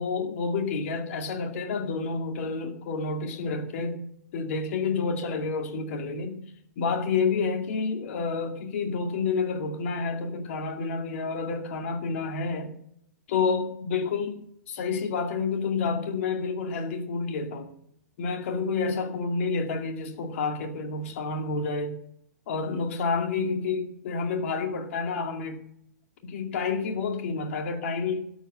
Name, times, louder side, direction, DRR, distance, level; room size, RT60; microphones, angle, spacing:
voice 1, 0.0-6.4 6.8-12.8 13.3-14.4 14.7-17.7 18.2-22.0 22.5-25.6 26.2-28.2, left 4 dB, 45° left, 4 dB, 2.4 m, -29 dB
13.0 x 8.0 x 7.7 m, 0.71 s
figure-of-eight pair, 115°, 10 cm